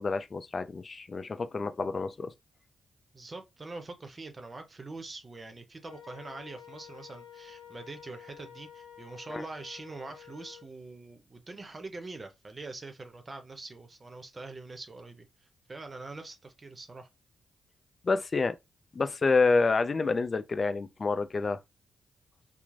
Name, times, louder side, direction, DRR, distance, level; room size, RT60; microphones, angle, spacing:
voice 1, 0.0-2.3 9.3-9.4 18.0-18.6 18.9-21.6, left 4 dB, 45° left, 0.3 m, -28 dB
voice 2, 3.1-17.1, right 3 dB, 40° right, 0.6 m, -44 dB
Wind instrument woodwind instrument, 5.8-10.7, left 9 dB, 85° left, 0.8 m, -50 dB
3.0 x 2.0 x 2.4 m
supercardioid pair, 45°, 0 cm